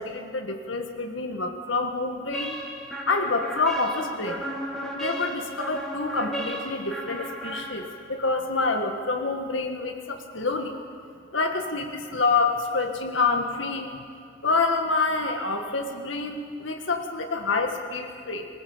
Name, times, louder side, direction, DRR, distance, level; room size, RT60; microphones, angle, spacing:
voice 1, 0.0-2.6 3.1-4.4 4.9-10.8 11.3-14.0 14.4-18.5, left 3 dB, 70° left, 4 dB, 1.7 m, -27 dB
sound 1, 2.3-8.2, right 1 dB, ahead, 3.0 m, -35 dB
20.0 x 19.0 x 7.9 m, 2.2 s
head